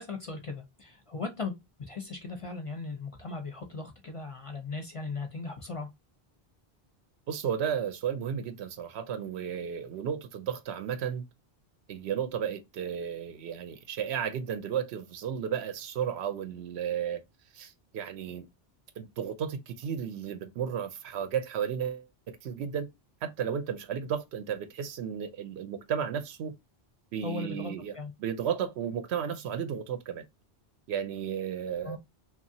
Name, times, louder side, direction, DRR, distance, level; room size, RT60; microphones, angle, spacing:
voice 1, 0.0-5.9 27.2-28.1 31.8-32.0, left 3 dB, 45° left, 0.5 m, -38 dB
voice 2, 7.3-11.2 11.9-17.2 17.5-18.5 19.0-22.9 23.2-26.5 27.1-30.2 30.9-32.0, right 8 dB, 85° right, 0.8 m, -33 dB
3.0 x 2.4 x 2.6 m
omnidirectional pair, 1.1 m